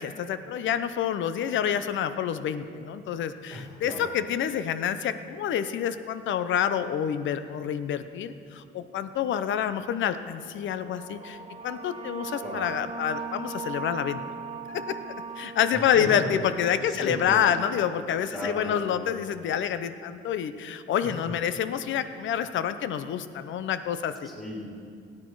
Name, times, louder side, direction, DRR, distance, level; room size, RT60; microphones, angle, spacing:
voice 1, 0.0-11.4 11.6-14.2 14.7-15.0 15.4-24.3, left 9 dB, 75° left, 11 dB, 0.7 m, -28 dB
voice 2, 3.5-4.1 12.4-12.6 15.7-17.4 18.3-19.1 21.0-21.1 24.2-24.7, equal, ahead, -6 dB, 3.8 m, -36 dB
sound 1, 10.7-17.9, right 4 dB, 30° right, 0.9 m, -39 dB
16.5 x 9.9 x 4.7 m, 2.3 s
cardioid pair, 90°, 20 cm